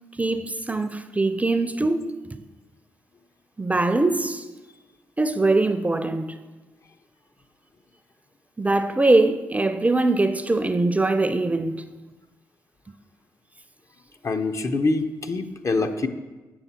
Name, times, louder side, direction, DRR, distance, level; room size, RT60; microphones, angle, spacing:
voice 1, 0.2-2.4 3.6-4.4 5.2-6.4 8.6-11.8, right 2 dB, 20° right, 0.5 m, -22 dB
voice 2, 14.2-16.1, left 3 dB, 45° left, 0.6 m, -25 dB
7.2 x 6.6 x 2.8 m
hypercardioid pair, 45°, 7 cm